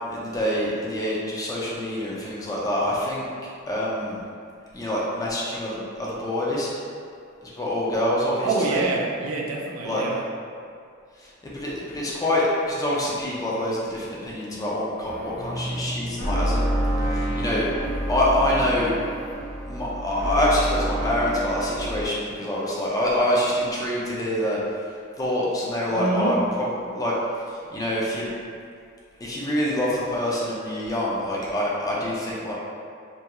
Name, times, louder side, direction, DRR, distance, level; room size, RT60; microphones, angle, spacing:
voice 1, 0.1-3.2 3.7-4.2 4.7-6.7 7.4-8.8 9.8-10.1 11.2-16.7 17.1-17.6 18.1-18.9 19.7-24.6 25.2-27.1 27.5-28.3 29.2-32.5, left 1 dB, 15° left, -6 dB, 0.4 m, -26 dB
voice 2, 8.4-10.2 25.9-26.4, right 3 dB, 80° right, -1 dB, 0.4 m, -26 dB
sound 1, 15.0-22.1, right 1 dB, 60° left, 0.8 m, -28 dB
2.3 x 2.3 x 2.8 m, 2.3 s
head